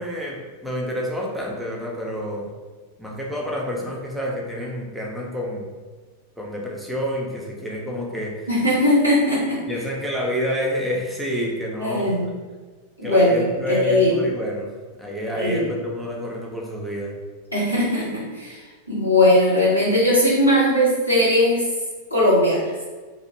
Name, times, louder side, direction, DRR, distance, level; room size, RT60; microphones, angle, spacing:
voice 1, 0.0-2.5 3.0-5.7 6.4-8.5 9.7-12.1 13.0-14.7 15.0-17.2, equal, 5° right, -3 dB, 0.5 m, -28 dB
voice 2, 8.5-9.6 11.8-12.3 13.0-14.2 15.4-15.6 17.5-21.6 22.1-22.7, left 1 dB, 90° left, -8 dB, 0.9 m, -19 dB
2.3 x 2.0 x 3.0 m, 1.4 s
figure-of-eight pair, 90°, 0 cm